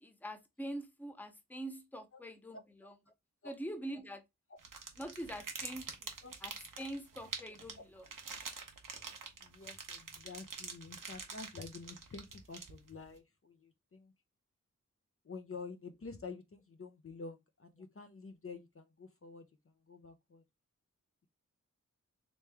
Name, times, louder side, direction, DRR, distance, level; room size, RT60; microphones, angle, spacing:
voice 1, 0.0-2.9 3.4-4.2 5.0-6.1 6.4-6.5 6.8-8.0, right 1 dB, 5° left, 0.7 m, -44 dB
sound 1, 4.6-13.1, right 5 dB, 90° right, 0.8 m, -46 dB
voice 2, 9.4-14.1 15.2-20.4, left 4 dB, 45° left, 0.6 m, -49 dB
3.2 x 3.1 x 3.4 m
wide cardioid pair, 50°, 32 cm